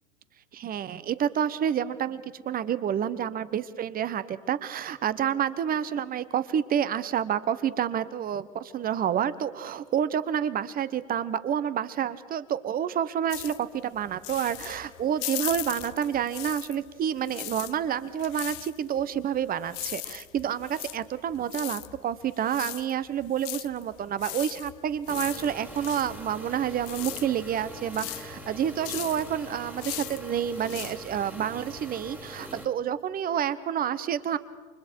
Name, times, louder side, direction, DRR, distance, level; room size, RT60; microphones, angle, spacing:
voice 1, 0.5-34.4, right 9 dB, 20° right, 15 dB, 0.9 m, -29 dB
sound 1, 13.3-16.9 17.2-31.8, left 20 dB, 40° left, 0.7 m, -39 dB
sound 2, 25.1-32.7, equal, 5° right, 2.0 m, -43 dB
29.0 x 24.5 x 4.6 m, 1.5 s
hypercardioid pair, 115°, 40 cm